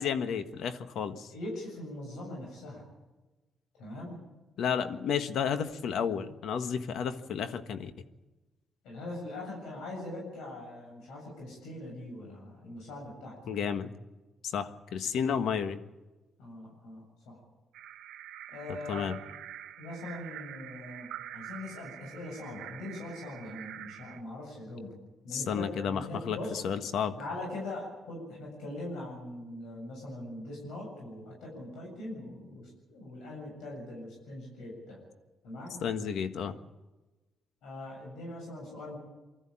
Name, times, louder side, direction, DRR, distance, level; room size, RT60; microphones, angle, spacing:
voice 1, 0.0-1.3 4.6-7.9 13.4-13.9 14.4-15.8 18.9-19.2 25.3-27.2 35.8-36.5, left 7 dB, 75° left, 9 dB, 1.5 m, -32 dB
voice 2, 1.3-2.8 3.8-4.2 8.8-13.4 16.4-17.4 18.5-19.2 19.8-24.9 25.2-26.5 27.2-35.0 35.4-35.8 37.6-39.0, left 1 dB, 90° left, -2 dB, 7.8 m, -41 dB
sound 1, 17.7-24.2, right 11 dB, 85° right, 1.2 m, -46 dB
24.5 x 14.0 x 8.8 m, 1.1 s
cardioid pair, 90°, 0 cm